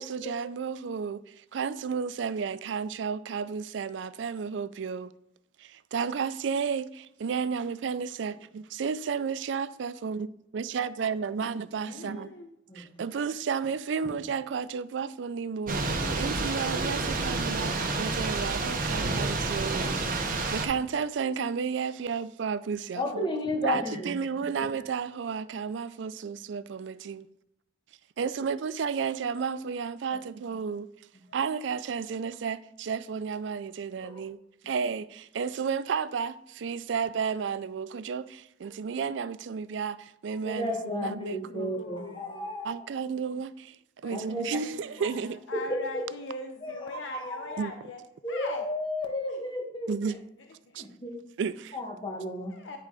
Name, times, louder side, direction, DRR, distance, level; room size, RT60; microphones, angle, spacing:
voice 1, 0.0-5.1 5.6-10.3 10.5-12.3 12.7-20.0 20.3-23.3 23.6-27.3 28.2-30.9 31.3-34.4 34.6-41.9 42.6-45.4 47.6-47.7 49.9-50.2 50.7-50.9 51.4-51.8, right 6 dB, 75° right, 0.4 m, -32 dB
voice 2, 11.8-12.5 41.4-42.7 44.0-48.0 48.3-48.6 49.3-49.4 50.7-50.8 52.5-52.8, left 2 dB, 80° left, 0.7 m, -42 dB
Thunder / Rain, 15.7-20.7, right 3 dB, 50° right, 1.0 m, -29 dB
voice 3, 16.0-16.3 22.9-24.1 30.1-30.2 34.0-34.1 40.4-42.8 44.1-44.4 45.5-46.0 46.6-47.6 48.2-49.9 50.8-51.2 51.7-52.5, left 1 dB, 25° left, 1.3 m, -33 dB
10.0 x 3.7 x 4.8 m
head